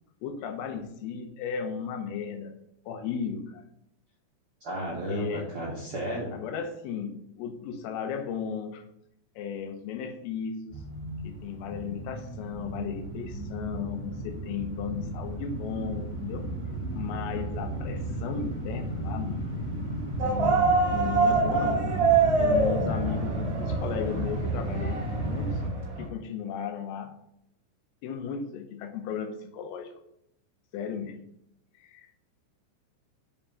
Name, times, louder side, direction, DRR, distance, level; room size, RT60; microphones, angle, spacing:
voice 1, 0.2-2.6 2.9-3.6 5.1-5.5 6.3-8.8 9.4-10.8 11.2-16.5 16.9-19.4 20.3-25.6 26.0-27.2 28.0-29.9 30.7-31.2 31.8-32.2, left 7 dB, 90° left, 7 dB, 3.7 m, -35 dB
voice 2, 4.6-6.4, right 1 dB, 85° right, -5 dB, 1.2 m, -33 dB
sound 1, 10.7-25.7, right 1 dB, 15° right, 2.0 m, -33 dB
sound 2, 20.2-26.1, right 4 dB, 30° right, 2.3 m, -26 dB
7.5 x 5.7 x 6.9 m, 0.77 s
omnidirectional pair, 5.8 m